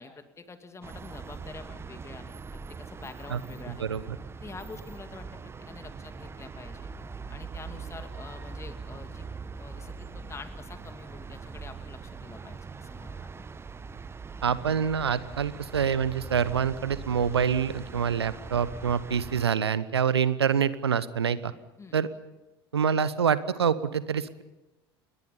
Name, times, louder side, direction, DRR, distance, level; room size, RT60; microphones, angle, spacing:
voice 1, 0.0-3.9 4.4-6.9 7.3-9.3 9.6-13.3 21.8-22.0, left 4 dB, 20° left, 8 dB, 2.5 m, -46 dB
sound 1, 0.8-19.5, right 5 dB, 20° right, 1.1 m, -42 dB
voice 2, 3.7-4.2 14.4-21.5 21.9-22.1 22.7-24.4, right 7 dB, 80° right, 16 dB, 1.0 m, -26 dB
29.5 x 21.5 x 5.4 m, 1.1 s
figure-of-eight pair, 70°, 13 cm